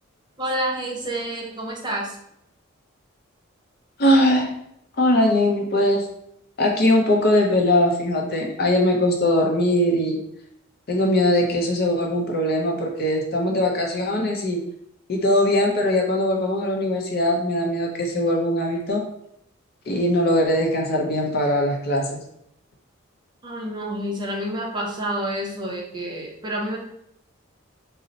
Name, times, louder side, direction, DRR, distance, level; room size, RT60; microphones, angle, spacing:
voice 1, 0.4-2.2 23.4-26.8, right 1 dB, 20° right, -2 dB, 0.5 m, -28 dB
voice 2, 4.0-4.5 5.0-6.0 6.6-10.2 10.9-14.6 15.1-19.1 19.9-22.2, left 1 dB, 50° left, 0 dB, 0.5 m, -21 dB
2.7 x 2.0 x 3.9 m, 0.76 s
head